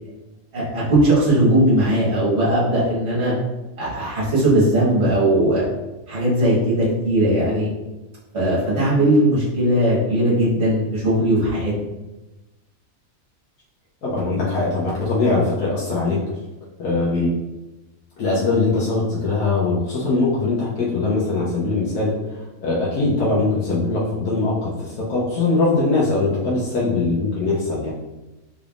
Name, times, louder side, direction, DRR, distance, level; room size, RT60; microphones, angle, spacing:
voice 1, 0.5-3.3 3.8-5.7 6.1-7.7 8.3-11.7, right 1 dB, 45° right, -9 dB, 1.8 m, -18 dB
voice 2, 14.0-16.2 16.8-17.3 18.2-27.9, left 3 dB, 85° left, -6 dB, 1.2 m, -21 dB
3.8 x 3.4 x 2.4 m, 1.0 s
omnidirectional pair, 1.5 m